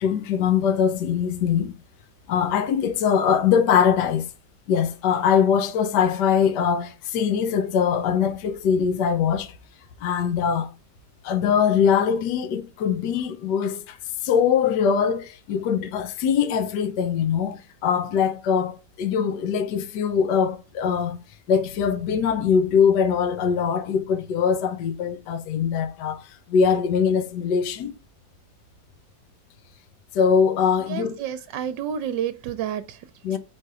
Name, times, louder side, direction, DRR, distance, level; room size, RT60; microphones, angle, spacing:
voice 1, 0.0-1.7 2.3-4.3 4.7-9.5 10.0-10.7 11.2-14.0 14.2-21.2 21.5-27.9 30.1-31.2 33.2-33.4, left 7 dB, 70° left, 1.3 m, -22 dB
voice 2, 30.9-33.1, right 9 dB, 75° right, 1.2 m, -30 dB
5.2 x 4.3 x 4.8 m
omnidirectional pair, 2.0 m